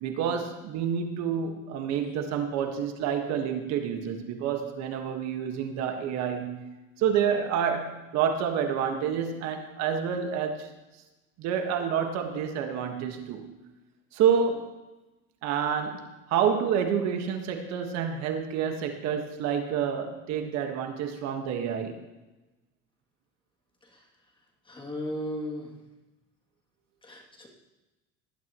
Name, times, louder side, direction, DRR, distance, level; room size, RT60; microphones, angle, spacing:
voice 1, 0.0-6.6 7.0-10.7 11.4-13.6 14.1-14.7 15.4-22.0, right 7 dB, 55° right, 5 dB, 1.6 m, -28 dB
voice 2, 24.6-25.7 27.0-27.5, equal, 15° left, -1 dB, 2.7 m, -36 dB
19.0 x 12.0 x 3.1 m, 1.1 s
supercardioid pair, 130°, 31 cm